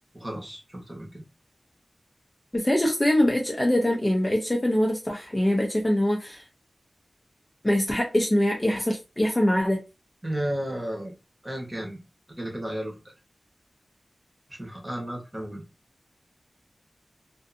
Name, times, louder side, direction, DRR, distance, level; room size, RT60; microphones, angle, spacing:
voice 1, 0.1-1.2 10.2-11.1 11.4-12.0 12.4-13.1 14.6-15.6, right 1 dB, 15° right, 0 dB, 1.0 m, -33 dB
voice 2, 2.5-6.4 7.6-9.8, left 1 dB, 20° left, 0 dB, 0.5 m, -23 dB
2.5 x 2.5 x 2.4 m, 0.27 s
wide cardioid pair, 90°, 0 cm